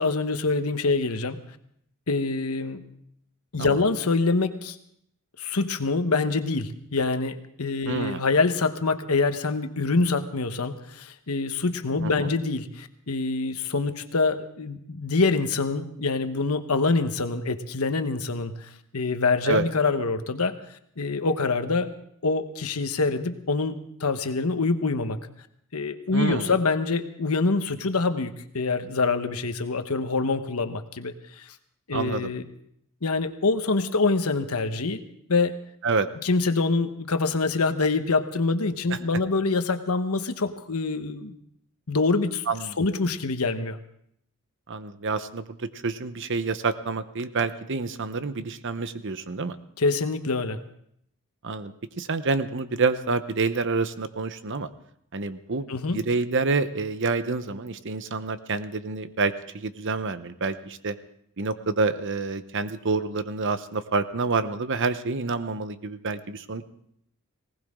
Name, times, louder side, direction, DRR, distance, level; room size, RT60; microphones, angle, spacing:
voice 1, 0.0-1.4 2.1-2.8 3.5-4.8 5.4-20.6 21.0-21.9 22.2-25.2 25.7-31.5 31.9-32.5 33.0-35.0 35.3-35.6 36.2-41.3 41.9-42.4 42.8-43.8 49.8-50.6 55.7-56.0, left 3 dB, 85° left, 9 dB, 1.1 m, -25 dB
voice 2, 7.9-8.2 12.0-12.3 19.4-19.7 26.1-26.5 31.9-32.3 35.8-36.1 38.9-39.0 42.5-42.8 44.7-49.6 51.4-54.7 55.1-55.7 55.9-61.0 61.4-66.6, right 4 dB, 55° right, 12 dB, 0.9 m, -28 dB
19.5 x 18.5 x 3.7 m, 0.72 s
head